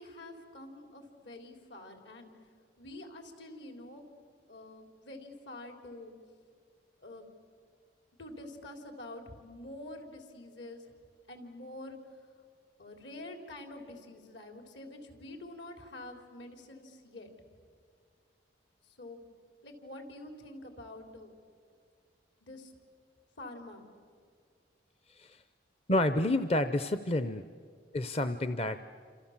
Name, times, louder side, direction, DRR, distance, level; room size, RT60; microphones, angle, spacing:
voice 1, 0.0-2.3 2.8-4.1 4.5-6.1 7.0-7.3 8.2-10.9 11.3-12.0 12.8-17.3 18.8-19.2 19.6-21.3 22.4-22.7 23.4-23.8, left 1 dB, 75° left, 5 dB, 3.8 m, -47 dB
voice 2, 25.1-25.4 25.9-27.4 27.9-28.8, left 1 dB, 30° left, 11 dB, 0.6 m, -29 dB
28.5 x 27.5 x 7.3 m, 2.1 s
head